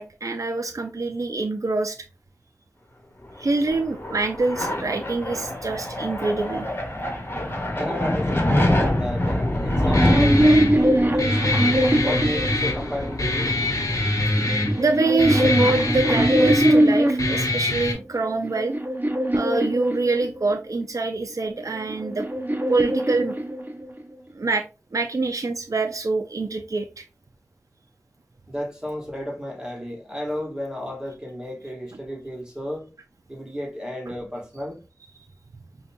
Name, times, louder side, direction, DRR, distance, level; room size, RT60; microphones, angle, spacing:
voice 1, 0.0-2.0 3.4-6.7 14.1-14.2 14.8-18.8 19.3-22.3 22.7-23.3 24.3-24.6 24.9-27.0, right 3 dB, 70° right, 0.4 m, -25 dB
sound 1, 3.4-14.7, left 1 dB, 40° left, 1.2 m, -26 dB
voice 2, 7.7-11.4 12.0-13.5 28.5-32.9 33.3-34.8, equal, 15° right, 1.2 m, -33 dB
sound 2, 9.8-13.2 14.1-17.5 18.1-20.6 21.6-24.0, right 1 dB, 35° right, 0.6 m, -22 dB
Guitar, 9.9-17.9, left 2 dB, 85° left, 0.8 m, -24 dB
5.0 x 2.3 x 2.6 m
wide cardioid pair, 40°, 6 cm